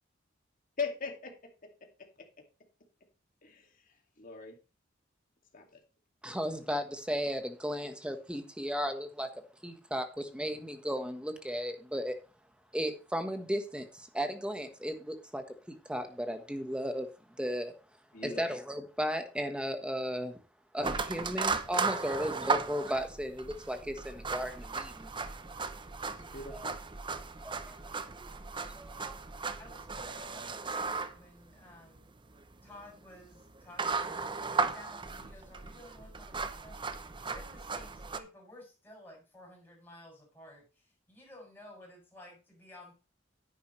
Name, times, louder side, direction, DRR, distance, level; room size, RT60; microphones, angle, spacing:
voice 1, 0.8-1.3 3.4-3.7 4.2-4.6 5.5-5.8 18.1-18.4 26.1-26.7, left 4 dB, 45° left, 3 dB, 2.5 m, -39 dB
voice 2, 6.2-12.1 12.7-17.1 17.4-17.7 18.2-20.4 20.7-25.1 26.5-26.7 27.4-27.8 28.6-29.1, equal, 5° right, 7 dB, 1.4 m, -35 dB
sound 1, 20.8-38.2, right 4 dB, 25° right, 0.7 m, -36 dB
voice 3, 29.6-32.1 32.6-42.9, left 1 dB, 10° left, -2 dB, 6.9 m, -54 dB
10.0 x 9.7 x 3.3 m, 0.33 s
head